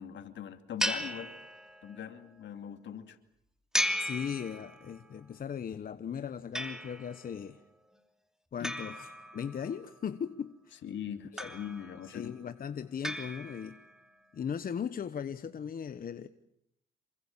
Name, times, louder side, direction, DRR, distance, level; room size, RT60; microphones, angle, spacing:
voice 1, 0.0-1.3 1.8-3.2 8.6-8.7 10.8-12.3, left 9 dB, 70° left, 8 dB, 2.7 m, -41 dB
sound 1, 0.8-2.0 3.7-5.0 6.5-7.3 8.6-9.8 11.4-12.1 13.0-13.9, equal, 5° right, 3.0 m, -36 dB
voice 2, 4.0-7.6 8.5-10.8 11.3-11.5 12.1-13.8 14.3-16.3, left 7 dB, 45° left, 11 dB, 1.1 m, -38 dB
28.0 x 24.5 x 7.4 m, 0.76 s
cardioid pair, 90°, 20 cm